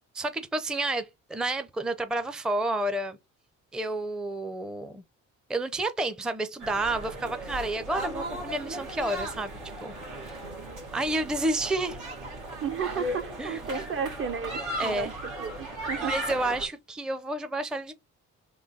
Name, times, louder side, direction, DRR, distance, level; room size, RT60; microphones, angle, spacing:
voice 1, 0.1-3.2 3.7-5.0 5.5-9.5 9.8-9.9 10.3-10.4 10.9-12.0 13.4-13.6 14.8-15.1 16.0-17.9, right 2 dB, ahead, 0.5 m, -30 dB
sound 1, 6.6-16.7, right 1 dB, 90° right, 1.9 m, -36 dB
voice 2, 12.6-16.1, right 7 dB, 45° right, 0.7 m, -33 dB
3.8 x 3.0 x 3.9 m
cardioid pair, 90°, 30 cm